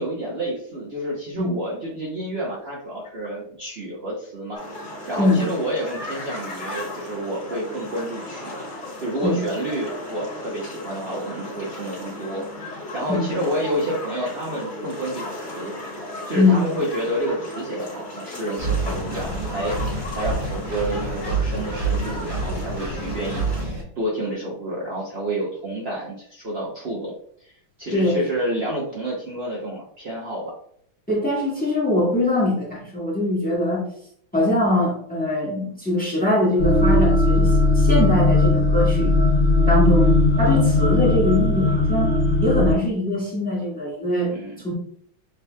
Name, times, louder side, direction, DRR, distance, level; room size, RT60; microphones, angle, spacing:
voice 1, 0.0-8.5 9.0-15.7 16.3-27.1 27.4-27.5 27.8-30.5 44.3-44.5, right 1 dB, 75° right, -5 dB, 0.5 m, -29 dB
sound 1, 4.5-23.6, left 1 dB, 45° left, 2.1 m, -36 dB
voice 2, 5.2-5.5 9.2-9.4 13.1-13.2 16.3-16.7 27.9-28.2 31.1-33.8 34.3-39.2 39.7-42.1 42.4-44.4 44.6-44.7, left 1 dB, 5° left, -4 dB, 0.9 m, -22 dB
Engine, 18.6-23.8, right 3 dB, 25° right, 0.8 m, -27 dB
sound 2, 36.6-42.7, left 2 dB, 90° left, 1.8 m, -18 dB
6.5 x 2.8 x 2.2 m, 0.65 s
omnidirectional pair, 2.3 m